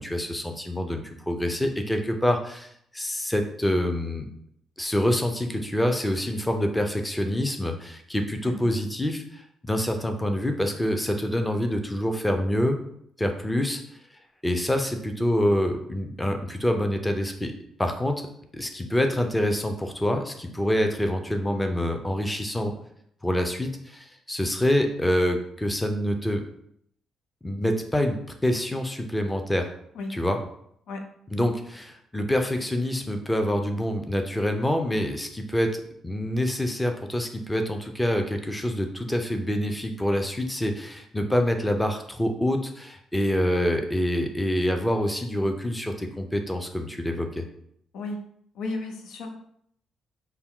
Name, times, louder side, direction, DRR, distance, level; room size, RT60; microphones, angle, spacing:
voice 1, 0.0-4.3 4.8-12.8 13.2-13.8 14.4-17.5 17.8-18.3 18.5-22.7 23.2-26.4 27.4-29.7 30.1-30.4 31.3-47.4, left 1 dB, 10° left, 5 dB, 0.6 m, -26 dB
voice 2, 48.6-49.4, left 2 dB, 80° left, 4 dB, 0.6 m, -33 dB
5.7 x 2.2 x 3.7 m, 0.69 s
cardioid pair, 90°, 0 cm